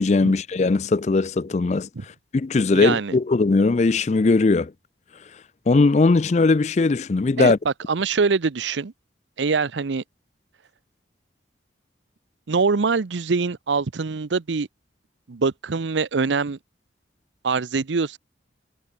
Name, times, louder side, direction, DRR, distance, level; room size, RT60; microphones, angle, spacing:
voice 1, 0.0-1.9 2.3-4.7 5.7-7.6, left 3 dB, 40° left, 0.4 m, -19 dB
voice 2, 2.7-3.1 7.4-8.9 9.4-10.0 12.5-14.7 15.3-16.6 17.4-18.2, right 4 dB, 90° right, 0.7 m, -24 dB
head